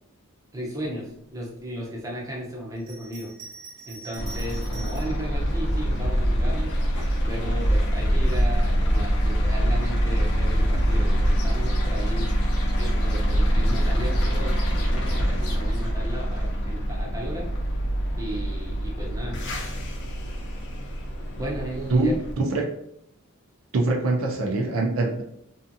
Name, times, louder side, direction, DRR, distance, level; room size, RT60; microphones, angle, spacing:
voice 1, 0.5-1.0 1.3-3.3 3.9-6.7 7.2-12.3 12.8-17.5 18.2-19.4 21.3-22.1, equal, 15° right, -3 dB, 0.6 m, -35 dB
Bell, 2.8-5.2 5.9-6.9, right 3 dB, 85° right, 1.1 m, -44 dB
sound 1, 4.2-22.3, equal, 55° left, 0.5 m, -26 dB
sound 2, 5.3-15.9, equal, 90° left, 0.7 m, -27 dB
voice 2, 21.9-22.7 23.7-25.2, right 2 dB, 65° right, 0 dB, 0.5 m, -23 dB
2.6 x 2.4 x 2.5 m, 0.73 s
head